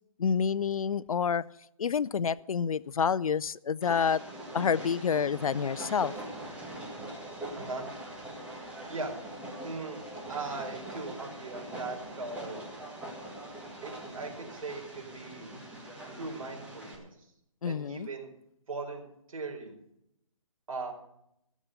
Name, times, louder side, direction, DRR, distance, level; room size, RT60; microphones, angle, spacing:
voice 1, 0.2-1.4 1.8-4.2 4.5-6.1 17.6-18.1, left 6 dB, 80° left, 19 dB, 0.5 m, -28 dB
Train, 3.8-17.0, right 1 dB, 5° right, 1.7 m, -42 dB
voice 2, 7.6-7.9 8.9-9.1 9.6-10.0 10.3-12.7 13.8-15.5 16.1-17.3 17.6-18.3 18.7-19.8 20.7-20.9, right 3 dB, 75° right, 2 dB, 4.3 m, -39 dB
15.5 x 7.4 x 6.8 m, 0.78 s
hypercardioid pair, 160°, 18 cm